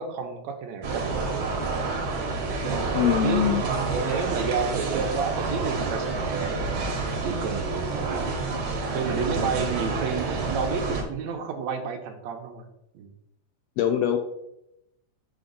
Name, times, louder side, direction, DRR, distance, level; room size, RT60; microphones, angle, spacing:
voice 1, 0.0-1.5 2.0-2.2 2.6-7.0 7.2-8.5 8.9-12.7 12.9-13.1, right 6 dB, 75° right, 5 dB, 1.9 m, -31 dB
sound 1, 0.8-11.0, right 3 dB, 50° right, 1.8 m, -28 dB
voice 2, 2.9-3.6 13.8-14.2, left 10 dB, 80° left, 6 dB, 1.5 m, -22 dB
6.1 x 6.1 x 3.8 m, 0.84 s
omnidirectional pair, 3.3 m